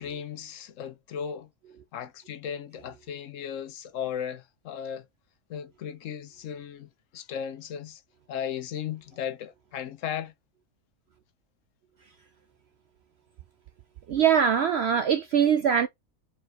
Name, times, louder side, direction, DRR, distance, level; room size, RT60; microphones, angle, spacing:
voice 1, 0.0-1.5 1.9-5.0 5.5-8.0 8.3-10.3, left 8 dB, 65° left, 0.9 m, -36 dB
voice 2, 14.1-15.9, right 8 dB, 70° right, 0.6 m, -22 dB
4.8 x 4.3 x 2.6 m
omnidirectional pair, 1.6 m